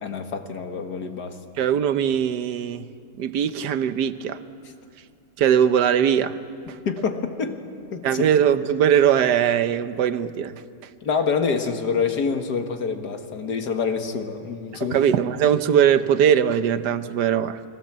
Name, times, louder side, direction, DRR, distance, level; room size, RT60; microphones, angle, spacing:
voice 1, 0.0-1.4 6.9-7.6 7.9-8.3 11.0-15.0, left 5 dB, 75° left, 2.2 m, -26 dB
voice 2, 1.6-2.9 3.2-4.4 5.4-6.4 6.7-6.8 8.0-10.5 14.9-17.6, right 9 dB, 80° right, 1.4 m, -20 dB
29.5 x 21.5 x 7.5 m
omnidirectional pair, 1.8 m